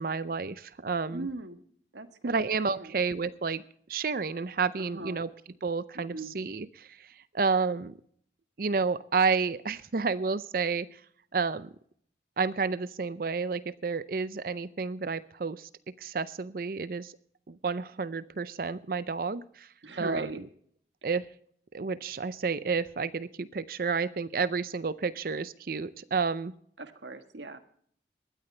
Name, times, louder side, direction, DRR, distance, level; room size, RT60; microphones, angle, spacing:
voice 1, 0.0-1.3 2.2-3.6 3.9-5.3 5.6-7.9 8.6-10.9 11.3-11.7 12.4-15.7 16.0-17.1 17.5-19.7 20.0-20.3 21.0-21.2 21.7-26.5, right 5 dB, 55° right, 16 dB, 0.5 m, -30 dB
voice 2, 1.1-1.6 1.9-2.4 2.7-2.9 4.8-5.2 5.9-6.3 19.8-20.4 26.8-27.6, right 2 dB, 85° right, 8 dB, 1.5 m, -39 dB
19.5 x 12.5 x 3.3 m, 0.62 s
head